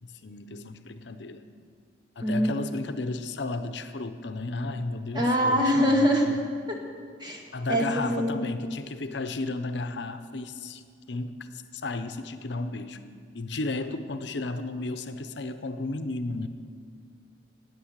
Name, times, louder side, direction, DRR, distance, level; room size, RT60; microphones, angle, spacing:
voice 1, 0.0-1.4 2.2-6.5 7.5-10.8 11.1-13.0 13.3-16.5, left 2 dB, 80° left, 10 dB, 0.8 m, -33 dB
voice 2, 2.2-2.5 5.1-6.3 7.2-7.4 7.7-8.4, equal, 25° right, 0 dB, 2.0 m, -23 dB
14.5 x 9.4 x 8.1 m, 2.1 s
head